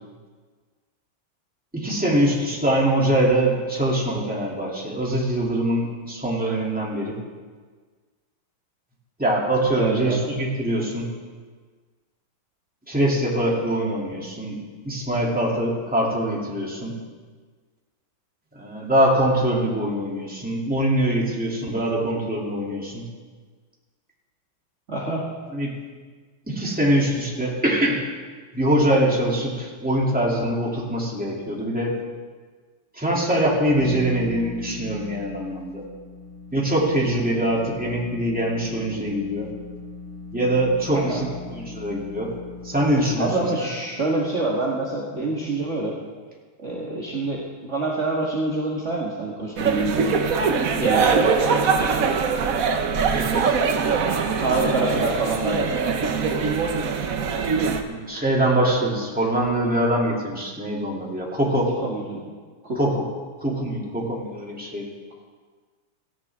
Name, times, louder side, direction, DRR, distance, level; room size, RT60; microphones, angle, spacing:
voice 1, 1.7-7.1 9.2-11.1 12.9-14.6 14.8-16.9 18.5-23.0 25.5-25.7 26.5-28.0 28.5-32.0 33.0-35.8 36.5-39.5 40.3-41.2 41.5-42.3 42.6-43.3 53.1-53.6 57.9-61.7 62.7-63.0 63.4-64.9, right 1 dB, 5° right, -4 dB, 2.8 m, -23 dB
voice 2, 9.8-10.2 24.9-25.2 40.9-41.2 43.2-46.0 46.6-50.1 50.8-51.1 51.8-52.1 54.4-55.7 61.6-62.2 62.6-62.8, right 2 dB, 35° right, -4 dB, 1.9 m, -26 dB
sound 1, 33.4-43.2, left 3 dB, 30° left, 4.7 m, -39 dB
sound 2, 49.6-57.8, right 5 dB, 50° right, 1.1 m, -22 dB
17.0 x 16.0 x 3.7 m, 1.5 s
omnidirectional pair, 2.4 m